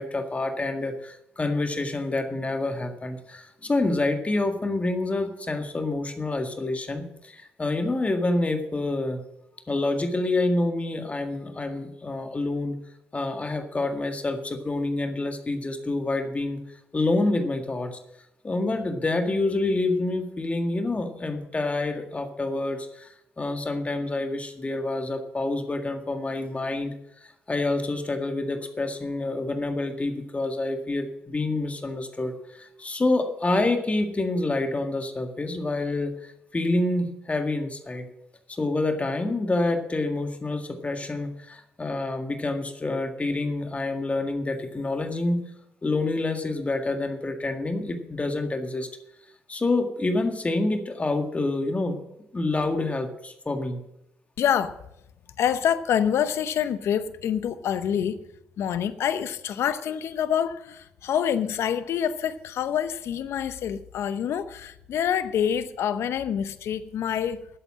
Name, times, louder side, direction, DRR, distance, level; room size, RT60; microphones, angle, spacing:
voice 1, 0.0-9.2 9.7-12.8 13.1-18.0 18.4-38.1 38.5-45.4 45.8-48.9 49.5-52.0 52.3-53.8, left 2 dB, 30° left, 5 dB, 1.8 m, -27 dB
voice 2, 54.4-54.8 55.4-58.2 58.6-67.5, left 9 dB, 70° left, 12 dB, 0.8 m, -26 dB
11.5 x 7.9 x 7.4 m, 0.84 s
hypercardioid pair, 50°, 5 cm